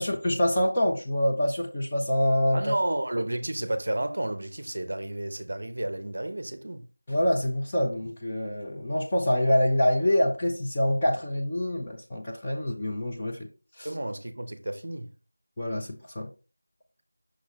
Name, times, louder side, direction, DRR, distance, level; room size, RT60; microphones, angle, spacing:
voice 1, 0.0-2.7 7.1-13.5 13.8-13.9 15.6-16.3, left 1 dB, 10° left, 0.5 m, -26 dB
voice 2, 2.5-6.9 13.8-15.1, right 1 dB, 35° right, 0.7 m, -31 dB
6.1 x 6.0 x 2.9 m
figure-of-eight pair, 180°, 0 cm